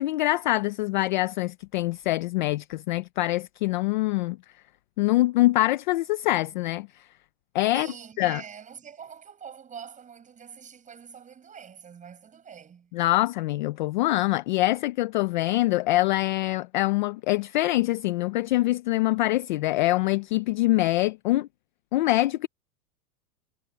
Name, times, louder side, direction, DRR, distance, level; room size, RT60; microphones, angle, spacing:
voice 1, 0.0-4.4 5.0-7.0 7.5-7.9 8.2-8.4 12.9-21.5 21.9-22.5, left 18 dB, 35° left, 0.4 m, -24 dB
voice 2, 7.7-12.9, right 7 dB, 15° right, 7.2 m, -44 dB
supercardioid pair, 150°, 46 cm